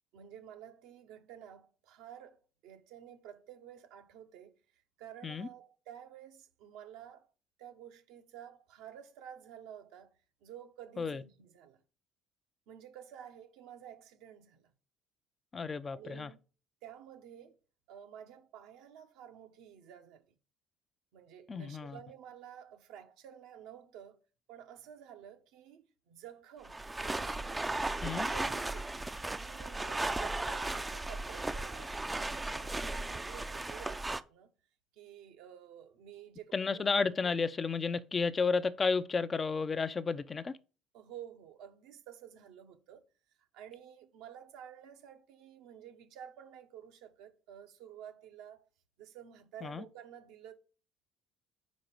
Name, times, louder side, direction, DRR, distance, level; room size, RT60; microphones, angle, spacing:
voice 1, 0.1-4.5 5.0-7.3 7.6-10.1 10.4-11.8 12.7-14.7 15.9-16.4 16.8-17.6 17.9-20.2 21.1-24.2 24.5-26.8 27.0-27.8 28.1-29.1 29.4-34.5 35.0-36.9 40.9-43.0 43.5-48.6 49.0-50.5, right 9 dB, 75° right, 1.0 m, -51 dB
voice 2, 15.5-16.3 21.5-22.0 28.0-28.3 36.5-40.5 49.6-49.8, left 4 dB, 30° left, 0.5 m, -32 dB
sound 1, 26.6-34.2, right 2 dB, 15° right, 0.5 m, -36 dB
5.2 x 4.8 x 6.0 m
supercardioid pair, 75°, 0 cm